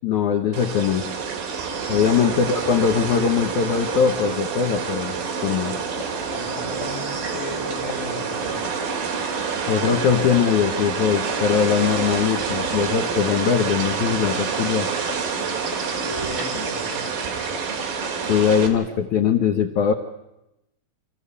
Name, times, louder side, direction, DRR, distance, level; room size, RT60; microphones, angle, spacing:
voice 1, 0.0-1.1 1.9-5.2 5.4-5.8 9.7-14.9 17.9-19.9, left 7 dB, 75° left, 4 dB, 1.8 m, -21 dB
sound 1, 0.5-18.7, right 5 dB, 60° right, 3.7 m, -27 dB
sound 2, 5.4-18.8, left 8 dB, 30° left, 4.6 m, -34 dB
voice 2, 6.3-8.7 15.9-17.1, equal, 10° left, -2 dB, 4.9 m, -35 dB
27.0 x 15.0 x 8.4 m, 0.91 s
omnidirectional pair, 4.9 m